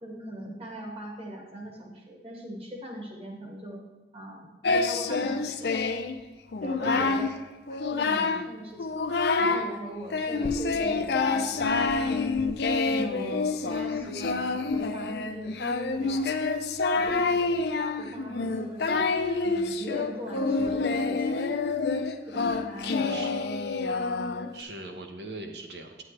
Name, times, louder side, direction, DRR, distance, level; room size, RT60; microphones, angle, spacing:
voice 1, 0.0-3.8 4.1-5.7 6.6-7.3 7.7-8.9 9.4-12.3 12.8-16.3 16.9-17.6 18.0-19.1 19.4-21.4 22.3-23.6, right 1 dB, 35° right, -1 dB, 1.6 m, -40 dB
Singing, 4.6-6.1 6.5-7.3 7.7-8.5 8.8-9.7 10.1-24.6, left 3 dB, 70° left, 0.5 m, -27 dB
voice 2, 6.8-7.2 22.9-23.3 24.5-26.0, right 2 dB, 75° right, 4 dB, 1.0 m, -40 dB
9.0 x 8.0 x 3.2 m, 1.2 s
head